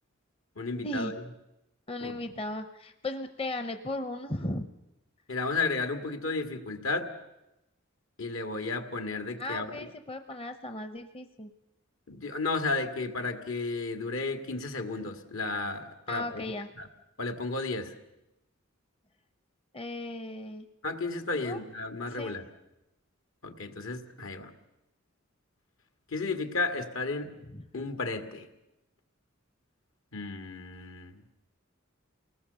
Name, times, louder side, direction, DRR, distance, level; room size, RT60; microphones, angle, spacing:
voice 1, 0.6-1.1 2.0-2.2 5.3-7.1 8.2-9.8 12.1-16.4 16.8-16.9 17.2-17.9 20.8-22.4 23.4-24.5 26.1-27.3 27.7-28.5 30.1-31.3, left 3 dB, 75° left, 7 dB, 2.0 m, -33 dB
voice 2, 1.9-4.7 9.4-11.5 16.1-16.7 19.7-20.7 21.3-21.6 22.1-22.4 27.5-27.6, left 1 dB, 30° left, 8 dB, 0.7 m, -36 dB
28.5 x 19.5 x 6.9 m, 0.95 s
head